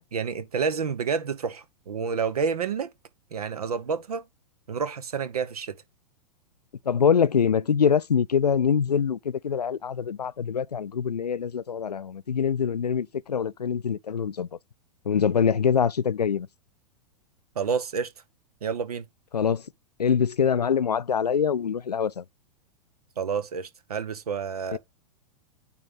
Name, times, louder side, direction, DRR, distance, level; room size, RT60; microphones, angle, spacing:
voice 1, 0.1-2.9 3.3-4.3 4.7-5.8 17.5-18.1 18.6-19.0 23.2-24.8, right 6 dB, 70° right, 1.3 m, -29 dB
voice 2, 6.9-14.5 15.1-16.5 19.3-19.6 20.0-22.2 24.7-24.8, left 7 dB, 90° left, 0.4 m, -24 dB
9.2 x 3.9 x 3.8 m
figure-of-eight pair, 105°, 20 cm